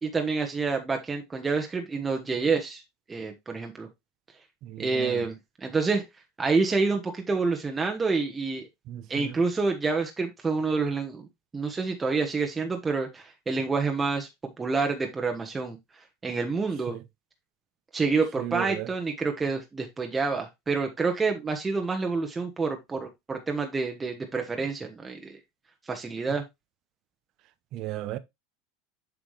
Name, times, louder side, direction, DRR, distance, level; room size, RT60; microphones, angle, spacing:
voice 1, 0.0-2.8 3.1-3.9 4.8-5.3 5.6-6.0 6.4-8.7 9.1-11.3 11.5-14.3 14.6-15.8 16.2-17.0 17.9-25.4 25.9-26.4, right 4 dB, 15° right, 1.3 m, -28 dB
voice 2, 4.6-5.3 8.9-9.4 16.9-17.0 18.4-18.9 27.7-28.2, right 13 dB, 50° right, 0.8 m, -35 dB
7.6 x 4.9 x 3.2 m
supercardioid pair, 115°, 0 cm